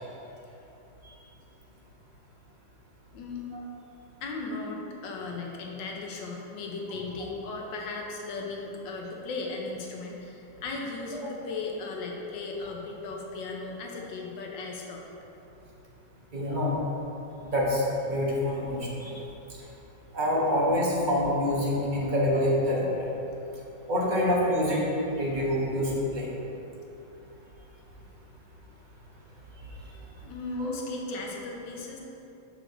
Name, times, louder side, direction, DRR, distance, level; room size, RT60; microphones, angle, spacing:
voice 1, 4.2-15.0 27.5-27.6 30.2-32.0, left 3 dB, 75° left, 0 dB, 1.5 m, -36 dB
voice 2, 16.3-16.7 17.4-19.1 20.1-23.1 23.9-24.8 25.1-26.3 30.6-30.8, left 1 dB, 30° right, -5 dB, 1.1 m, -26 dB
6.3 x 6.2 x 3.9 m, 3.0 s
omnidirectional pair, 2.1 m